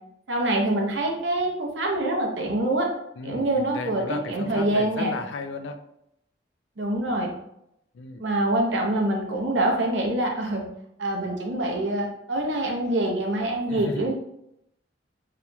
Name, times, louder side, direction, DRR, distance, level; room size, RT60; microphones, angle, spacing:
voice 1, 0.3-2.9 3.2-4.0 4.3-5.1 6.8-7.3 8.2-10.7 11.0-14.1, right 1 dB, 70° right, 1 dB, 0.7 m, -25 dB
voice 2, 3.2-5.8 7.9-8.2 13.7-14.1, left 3 dB, 90° left, 8 dB, 0.4 m, -34 dB
4.2 x 2.9 x 2.2 m, 0.78 s
head